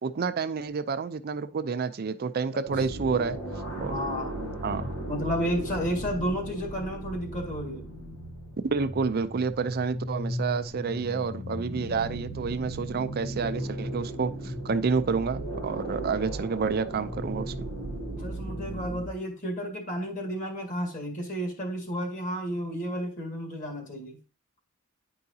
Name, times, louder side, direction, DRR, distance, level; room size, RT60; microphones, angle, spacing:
voice 1, 0.0-3.4 3.8-3.9 4.6-4.9 8.6-17.7, right 5 dB, 45° right, 0.5 m, -29 dB
sound 1, 2.7-19.1, right 1 dB, 85° left, 1.4 m, -36 dB
voice 2, 3.8-4.4 5.1-7.9 18.2-24.2, equal, 40° left, 2.0 m, -32 dB
9.9 x 4.7 x 2.7 m
head